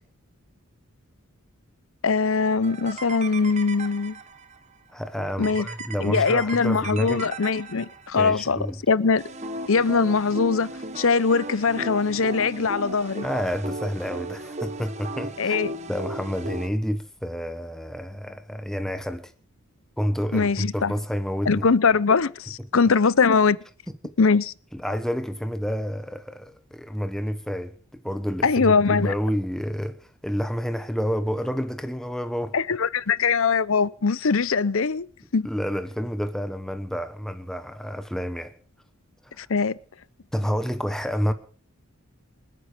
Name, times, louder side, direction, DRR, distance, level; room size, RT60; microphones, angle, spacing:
voice 1, 2.0-4.2 5.4-5.7 6.0-8.6 8.9-9.3 9.7-13.3 15.4-15.7 20.3-20.9 21.5-23.6 24.2-24.5 28.4-29.1 32.5-35.1 35.3-35.5 39.4-39.8, left 5 dB, 65° left, 0.7 m, -22 dB
sound 1, 2.6-4.6 5.4-8.3 9.2-16.7, right 2 dB, 30° right, 1.2 m, -36 dB
voice 2, 4.9-7.2 8.2-8.8 13.2-15.6 15.9-19.3 20.0-21.7 24.0-24.1 24.7-32.6 35.4-38.5 40.3-41.3, equal, ahead, 1.1 m, -29 dB
28.0 x 9.5 x 5.1 m
head